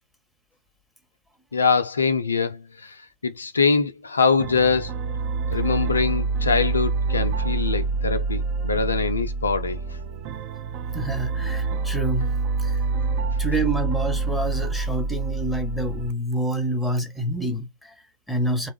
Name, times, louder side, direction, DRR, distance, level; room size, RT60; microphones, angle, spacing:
voice 1, 1.5-5.0 5.5-9.8 12.7-12.8, left 4 dB, 75° left, 0.3 m, -23 dB
sound 1, 4.4-16.1, right 4 dB, 45° right, 0.5 m, -26 dB
voice 2, 10.9-12.8 13.4-18.7, right 1 dB, ahead, 0.9 m, -28 dB
2.9 x 2.2 x 3.3 m
figure-of-eight pair, 90°, 0 cm